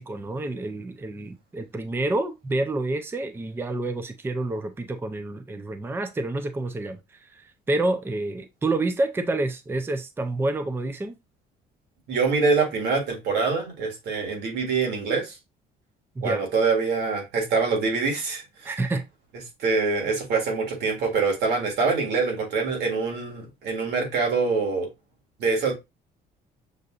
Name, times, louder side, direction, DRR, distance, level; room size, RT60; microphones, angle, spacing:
voice 1, 0.0-7.0 7.3-11.1 16.2-16.5 18.6-19.0, right 2 dB, 15° right, 0.5 m, -28 dB
voice 2, 12.1-15.3 16.2-18.7 19.6-24.9 25.4-25.7, right 4 dB, 80° right, 1.7 m, -25 dB
6.6 x 2.6 x 2.3 m
cardioid pair, 110°, 17 cm